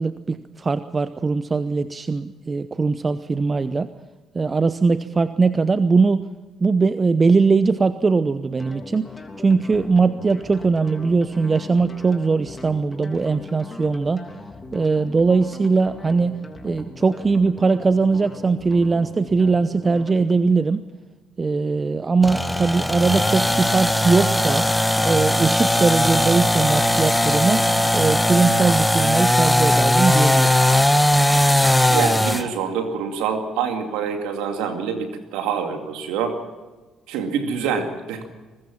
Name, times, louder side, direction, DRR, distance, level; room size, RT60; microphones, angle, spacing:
voice 1, 0.0-3.9 4.3-6.2 6.6-9.1 9.4-14.2 14.7-16.4 16.6-20.8 21.4-24.7 25.0-27.6 27.9-30.5, right 4 dB, 30° right, 13 dB, 0.8 m, -20 dB
sound 1, 8.6-20.4, left 3 dB, 25° left, 3.2 m, -40 dB
sound 2, 22.2-32.5, left 1 dB, 5° left, 1.5 m, -19 dB
voice 2, 31.9-36.4 37.1-38.2, right 6 dB, 75° right, 5 dB, 2.3 m, -26 dB
22.5 x 20.5 x 5.9 m, 1.2 s
hypercardioid pair, 50°, 0 cm